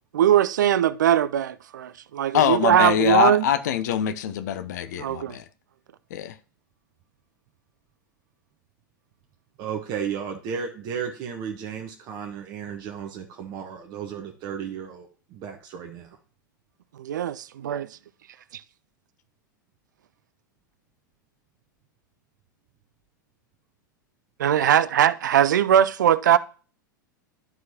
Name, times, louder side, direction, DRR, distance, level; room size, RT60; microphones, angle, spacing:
voice 1, 0.1-3.4 5.0-5.4 17.0-17.9 24.4-26.4, right 10 dB, 65° right, 0.5 m, -20 dB
voice 2, 2.3-5.4 6.1-6.3 24.6-24.8, left 10 dB, 60° left, 0.7 m, -24 dB
voice 3, 9.6-16.2, right 7 dB, 40° right, 1.1 m, -34 dB
12.5 x 4.6 x 2.8 m
figure-of-eight pair, 90°, 11 cm